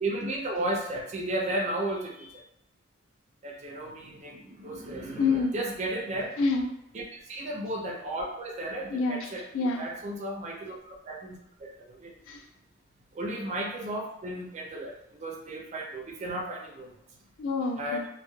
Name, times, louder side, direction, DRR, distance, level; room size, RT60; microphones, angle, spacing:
voice 1, 0.0-2.3 3.4-6.3 6.9-9.4 9.8-11.7 12.0-12.1 13.2-14.9 15.2-16.9 17.8-18.1, right 1 dB, 35° right, 0 dB, 0.4 m, -34 dB
voice 2, 5.2-5.5 6.4-6.7 8.9-9.9 12.3-12.4 17.4-18.1, left 4 dB, 65° left, 3 dB, 0.3 m, -28 dB
2.2 x 2.0 x 3.0 m, 0.81 s
head